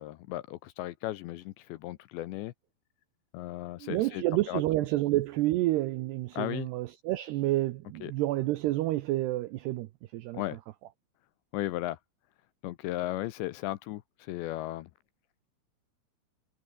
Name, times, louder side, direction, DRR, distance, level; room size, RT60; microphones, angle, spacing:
voice 1, 0.0-2.5 3.3-4.6 6.4-6.7 8.0-8.1 10.3-10.6 11.5-12.0 12.6-14.9, left 16 dB, 80° left, 2.8 m, -36 dB
voice 2, 3.8-10.4, right 17 dB, 80° right, 2.4 m, -29 dB
omnidirectional pair, 5.8 m